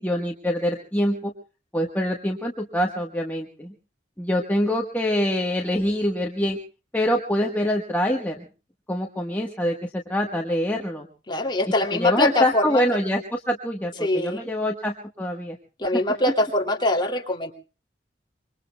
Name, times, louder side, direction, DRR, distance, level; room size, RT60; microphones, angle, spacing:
voice 1, 0.0-1.3 1.7-3.7 4.2-6.6 6.9-8.5 8.9-9.7 10.1-11.1 12.0-15.6, equal, 10° left, 0 dB, 1.4 m, -25 dB
voice 2, 11.3-12.8 14.0-14.5 15.8-17.5, left 2 dB, 25° left, 2 dB, 2.7 m, -23 dB
26.0 x 23.0 x 2.3 m, 0.35 s
head